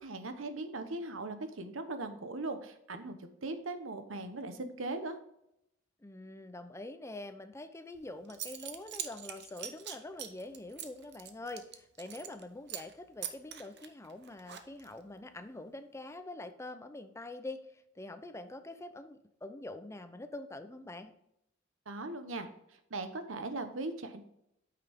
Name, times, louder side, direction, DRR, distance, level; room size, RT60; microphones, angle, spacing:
voice 1, 0.0-5.2 21.9-22.5 22.9-24.2, right 2 dB, 90° right, 8 dB, 1.0 m, -39 dB
voice 2, 6.0-21.1, left 2 dB, 15° left, 9 dB, 0.6 m, -45 dB
Zipper (clothing) / Coin (dropping), 7.9-8.0 8.3-12.4 12.7-12.9 13.2-15.0, right 10 dB, 60° right, 0.8 m, -43 dB
9.0 x 5.8 x 3.5 m, 0.78 s
head